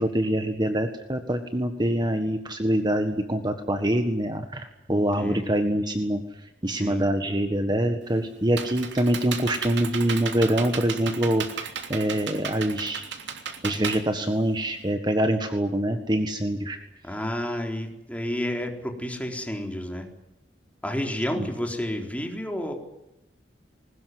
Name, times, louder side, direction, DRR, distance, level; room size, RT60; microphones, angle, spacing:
voice 1, 0.0-6.2 6.6-13.0 13.6-16.8 21.3-21.5, right 1 dB, 25° right, 7 dB, 1.6 m, -25 dB
voice 2, 4.9-5.5 6.7-7.0 17.0-20.1 20.8-22.7, left 1 dB, 10° left, 3 dB, 4.1 m, -31 dB
Computer keyboard, 8.0-14.9, right 6 dB, 85° right, 3.1 m, -35 dB
21.5 x 19.5 x 9.6 m, 0.88 s
head